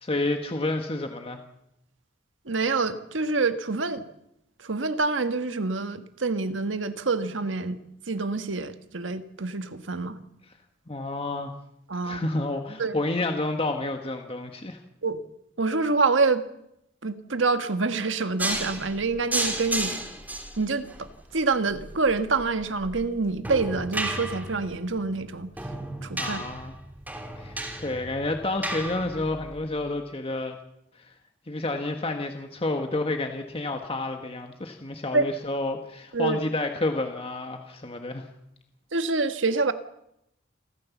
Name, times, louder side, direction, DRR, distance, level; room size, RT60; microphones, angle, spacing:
voice 1, 0.0-1.4 10.9-11.5 11.9-14.8 26.2-26.8 27.3-30.6 30.9-31.1 31.5-38.3, left 2 dB, 30° left, 5 dB, 1.5 m, -30 dB
voice 2, 2.5-4.0 4.6-7.8 8.1-10.2 11.9-12.3 12.8-13.0 15.0-15.2 15.6-16.4 17.0-20.0 20.6-25.5 26.0-26.4 35.1-35.2 36.1-36.4 38.9-39.7, right 3 dB, 75° right, 9 dB, 1.5 m, -26 dB
sound 1, 18.4-29.6, right 1 dB, 10° right, 2.9 m, -34 dB
28.0 x 14.0 x 7.3 m, 0.82 s
head